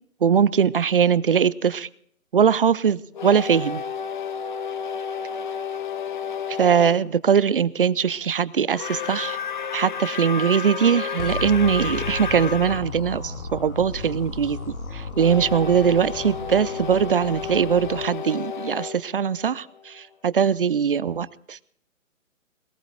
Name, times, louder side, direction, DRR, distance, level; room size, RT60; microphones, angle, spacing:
voice 1, 0.2-1.9 2.3-3.8 6.5-9.4 9.7-21.6, right 7 dB, 40° right, 18 dB, 0.5 m, -21 dB
sound 1, 3.1-7.0 8.7-12.8 15.1-20.0, left 6 dB, 35° left, 0.6 m, -32 dB
sound 2, 11.2-18.1, left 3 dB, 75° left, 2.7 m, -34 dB
21.5 x 19.5 x 2.5 m, 0.64 s
hypercardioid pair, 155°, 42 cm